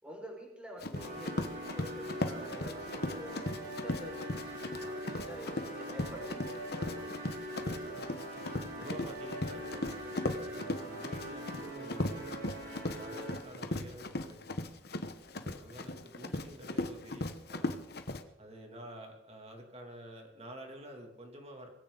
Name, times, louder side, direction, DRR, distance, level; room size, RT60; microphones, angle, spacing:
voice 1, 0.0-5.0 5.2-7.3 16.2-16.5, equal, 5° right, -2 dB, 5.8 m, -48 dB
Run, 0.8-18.2, left 1 dB, 60° left, 1.3 m, -38 dB
sound 1, 0.9-13.6, right 1 dB, 50° right, 6.9 m, -42 dB
voice 2, 8.8-12.3 12.9-14.6 15.3-17.7 18.4-21.7, equal, 35° right, 2 dB, 2.9 m, -49 dB
21.5 x 16.0 x 4.1 m, 0.88 s
head